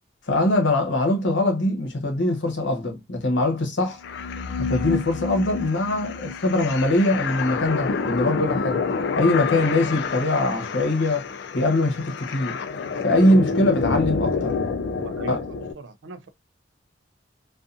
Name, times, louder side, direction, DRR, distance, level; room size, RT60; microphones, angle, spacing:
voice 1, 0.3-4.0 4.6-8.8 9.1-12.6 13.0-14.6 15.3-15.4, left 1 dB, 80° left, 0.9 m, -22 dB
sound 1, 4.0-15.7, left 4 dB, 65° left, 0.3 m, -28 dB
voice 2, 15.0-16.3, right 2 dB, 80° right, 0.4 m, -40 dB
2.5 x 2.4 x 2.3 m
head